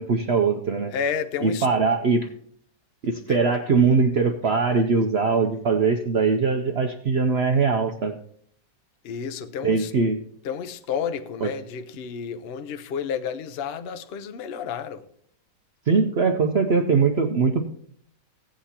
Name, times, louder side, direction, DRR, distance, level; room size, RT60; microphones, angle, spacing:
voice 1, 0.0-0.9 1.4-2.3 3.0-8.2 9.6-10.2 11.4-11.5 15.9-17.6, right 4 dB, 90° right, 0.5 m, -21 dB
voice 2, 0.9-1.7 3.3-3.4 9.0-9.9 10.4-15.0, left 7 dB, 85° left, 0.5 m, -31 dB
16.0 x 8.5 x 2.9 m
omnidirectional pair, 1.9 m